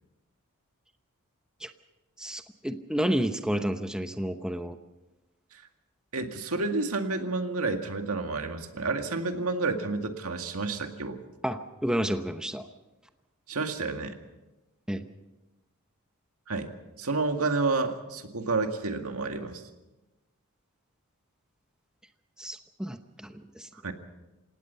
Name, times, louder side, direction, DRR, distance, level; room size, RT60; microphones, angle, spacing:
voice 1, 2.2-4.8 11.4-12.7 14.9-15.1 22.4-23.7, equal, 5° right, 7 dB, 0.8 m, -31 dB
voice 2, 6.1-11.2 13.5-14.2 16.5-16.7 17.0-19.6 23.8-23.9, right 3 dB, 80° right, 5 dB, 2.0 m, -30 dB
28.0 x 17.5 x 5.7 m, 1.0 s
head